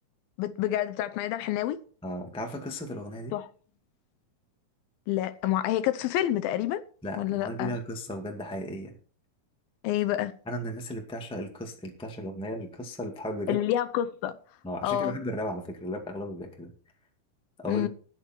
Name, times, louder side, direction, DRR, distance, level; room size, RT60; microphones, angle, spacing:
voice 1, 0.4-1.8 3.3-3.5 5.1-6.8 7.2-7.8 9.8-10.3 13.5-14.4 14.8-15.2 17.7-17.9, left 12 dB, 80° left, 2.3 m, -28 dB
voice 2, 2.0-3.3 7.0-8.9 10.5-13.6 14.6-16.7 17.6-17.9, equal, 5° left, 0.5 m, -35 dB
20.0 x 6.7 x 4.5 m
omnidirectional pair, 4.5 m